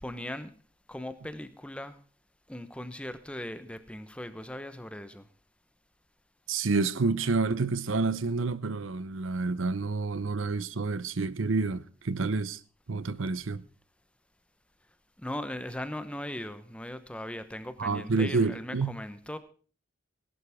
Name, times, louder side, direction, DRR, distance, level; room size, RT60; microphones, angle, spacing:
voice 1, 0.0-0.5 0.9-2.0 2.5-5.3 15.2-19.4, left 1 dB, 5° left, 0.9 m, -39 dB
voice 2, 6.5-12.6 12.9-13.6 17.8-18.9, right 4 dB, 75° right, 0.7 m, -29 dB
18.5 x 11.5 x 3.6 m
head